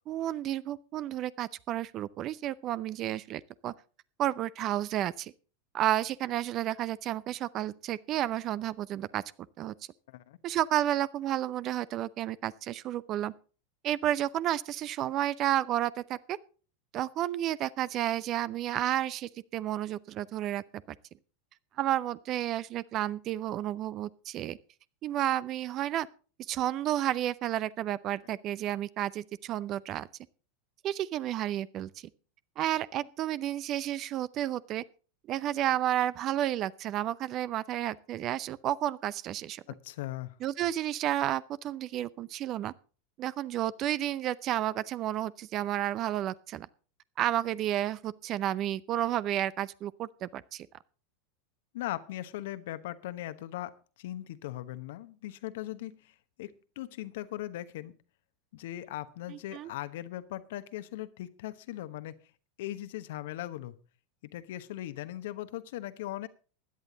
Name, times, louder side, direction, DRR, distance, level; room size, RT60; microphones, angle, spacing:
voice 1, 0.1-3.7 4.2-5.3 5.7-9.2 9.6-9.7 10.4-13.3 13.8-16.4 16.9-21.0 21.8-24.6 25.0-26.1 26.5-30.1 30.8-31.9 32.6-34.8 35.3-39.6 40.4-42.7 43.2-46.7 47.2-50.7 59.3-59.7, right 12 dB, 40° right, 0.6 m, -31 dB
voice 2, 10.1-10.4 39.7-40.4 51.7-53.7 54.0-58.0 58.5-62.2 62.6-63.8 64.2-66.3, left 14 dB, 65° left, 1.0 m, -39 dB
16.5 x 11.0 x 4.0 m
figure-of-eight pair, 85°, 0 cm